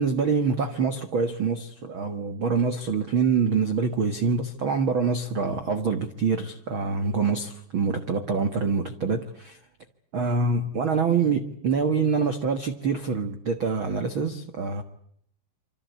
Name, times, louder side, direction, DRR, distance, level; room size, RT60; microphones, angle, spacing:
voice 1, 0.0-9.6 10.1-14.8, right 5 dB, 65° right, 1.2 m, -25 dB
27.5 x 26.0 x 8.2 m
omnidirectional pair, 4.7 m